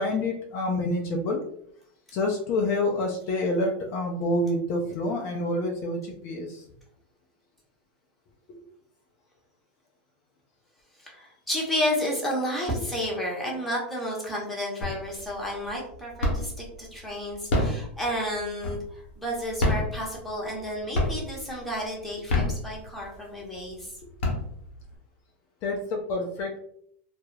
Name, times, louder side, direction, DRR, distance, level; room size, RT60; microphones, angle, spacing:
voice 1, 0.0-1.4 2.1-6.6 8.5-8.6 25.6-26.6, left 2 dB, 45° left, 1 dB, 0.5 m, -27 dB
voice 2, 11.0-24.0, equal, ahead, -4 dB, 0.9 m, -31 dB
sound 1, 14.8-15.3 15.7-16.7 17.3-19.1 19.5-20.6 20.9-21.5 22.1-23.2 23.7-23.8 24.0-24.9, left 2 dB, 75° left, 0.9 m, -27 dB
2.3 x 2.0 x 3.1 m, 0.68 s
hypercardioid pair, 120°, 7 cm